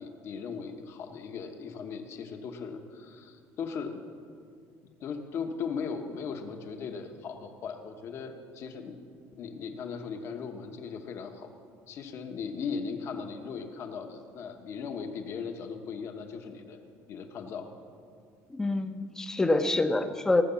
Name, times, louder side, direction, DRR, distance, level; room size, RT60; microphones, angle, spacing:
voice 1, 0.0-4.0 5.0-9.0 9.4-11.5 11.9-16.8 17.1-17.7, left 5 dB, 45° left, 6 dB, 1.1 m, -38 dB
voice 2, 18.5-20.4, left 2 dB, 10° left, 8 dB, 0.6 m, -26 dB
18.0 x 6.5 x 7.0 m, 2.2 s
cardioid pair, 160°, 6 cm